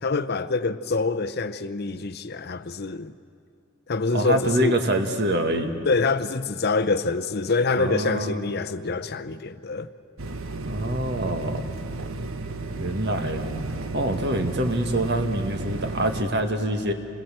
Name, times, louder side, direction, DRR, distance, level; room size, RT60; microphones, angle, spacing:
voice 1, 0.0-3.1 3.9-4.8 5.9-9.9, left 3 dB, 50° left, 0.7 m, -25 dB
voice 2, 4.1-5.7 7.8-8.4 10.7-11.7 12.7-13.5 13.9-16.9, right 1 dB, 55° right, 1.9 m, -25 dB
sound 1, 10.2-16.2, right 2 dB, 85° right, 1.1 m, -33 dB
28.0 x 21.0 x 7.7 m
head